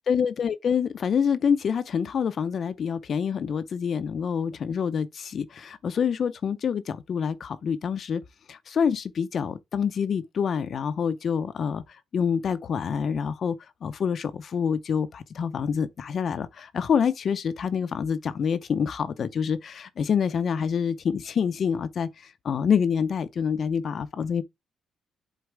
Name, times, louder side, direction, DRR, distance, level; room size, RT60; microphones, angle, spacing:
voice 1, 0.1-8.2 8.5-11.8 12.1-13.6 13.8-24.4, left 7 dB, 55° left, 0.6 m, -27 dB
8.0 x 4.1 x 3.3 m
cardioid pair, 90°, 0 cm